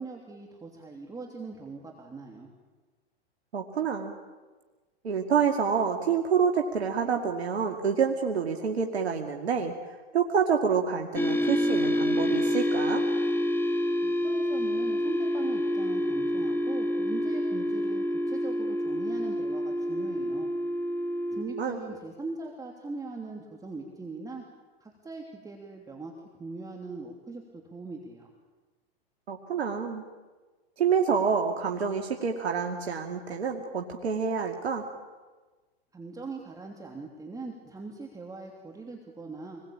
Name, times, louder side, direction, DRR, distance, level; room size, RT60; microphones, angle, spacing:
voice 1, 0.0-2.5 14.0-20.5 21.3-24.4 24.8-26.1 26.4-28.3 35.9-39.6, right 3 dB, 10° right, 1 dB, 3.1 m, -40 dB
voice 2, 3.5-4.2 5.0-13.1 21.6-21.8 29.3-30.0 30.8-34.9, right 6 dB, 85° right, 3 dB, 2.4 m, -27 dB
sound 1, 11.2-21.4, left 1 dB, 5° left, 3.2 m, -28 dB
27.5 x 21.0 x 8.8 m, 1.3 s
hypercardioid pair, 115°, 31 cm